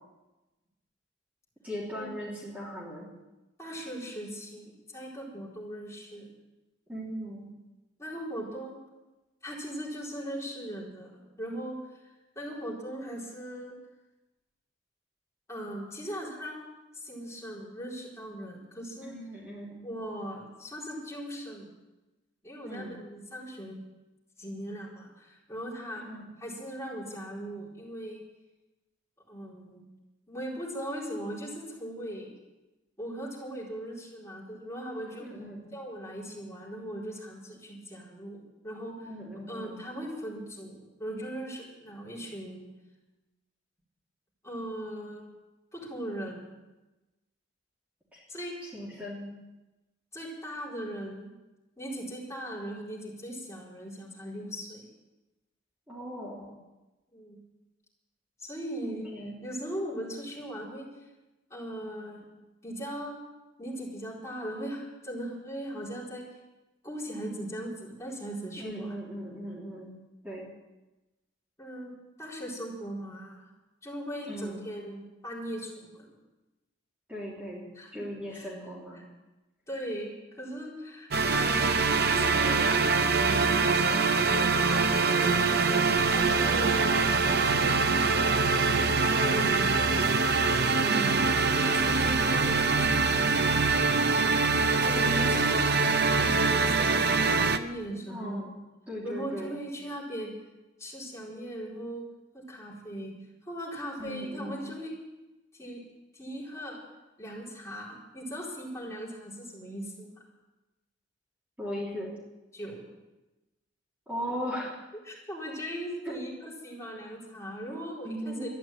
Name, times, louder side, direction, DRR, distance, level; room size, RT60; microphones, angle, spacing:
voice 1, 1.6-3.1 6.9-7.5 19.0-19.9 22.6-22.9 26.0-26.3 35.2-35.6 39.1-39.8 48.1-48.2 48.7-49.3 55.9-56.5 58.9-59.4 68.6-69.9 70.2-70.5 74.3-74.6 77.1-77.6 77.9-79.0 89.4-89.7 98.0-98.5 98.9-99.5 104.0-104.6 111.6-112.1 114.1-114.8 118.0-118.5, equal, 10° right, -7 dB, 3.4 m, -38 dB
voice 2, 3.6-6.3 8.0-8.8 9.4-12.1 12.3-13.8 15.5-16.7 16.9-19.1 19.8-21.7 22.4-23.8 24.4-26.0 26.4-28.2 29.3-29.8 30.3-32.3 33.0-35.3 35.7-39.1 39.5-42.7 44.4-45.3 45.7-46.5 48.3-48.5 50.1-51.3 51.8-54.8 57.1-57.4 58.4-59.1 59.4-60.9 61.5-62.3 62.6-63.2 63.6-66.2 66.8-69.0 71.6-71.9 72.2-73.5 73.8-76.2 77.7-77.9 78.3-78.5 78.9-79.0 79.7-84.0 84.7-87.1 87.4-88.1 89.0-89.7 90.5-91.3 91.6-93.0 94.8-97.1 97.5-98.4 99.0-100.4 100.8-102.0 102.3-103.1 103.5-104.9 105.5-105.8 106.1-106.8 107.2-110.2 112.5-112.8 115.0-118.5, right 1 dB, 15° left, -6 dB, 4.5 m, -39 dB
sound 1, 81.1-97.6, right 4 dB, 55° right, 0.8 m, -24 dB
13.0 x 11.0 x 9.0 m, 1.1 s
head